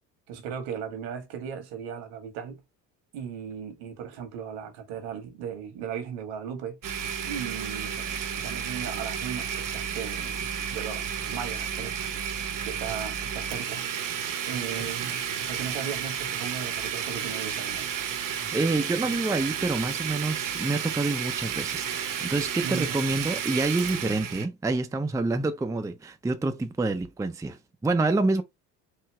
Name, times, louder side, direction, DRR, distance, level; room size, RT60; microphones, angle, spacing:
voice 1, 0.3-2.6 3.1-6.8 7.2-12.0 12.6-13.9 14.4-17.9 22.6-22.9, right 7 dB, 65° right, 1.6 m, -37 dB
Domestic sounds home sounds, 6.8-24.5, right 8 dB, 45° right, 1.0 m, -32 dB
voice 2, 18.2-28.4, right 2 dB, 5° right, 0.6 m, -27 dB
4.9 x 2.8 x 3.2 m
hypercardioid pair, 60°, 47 cm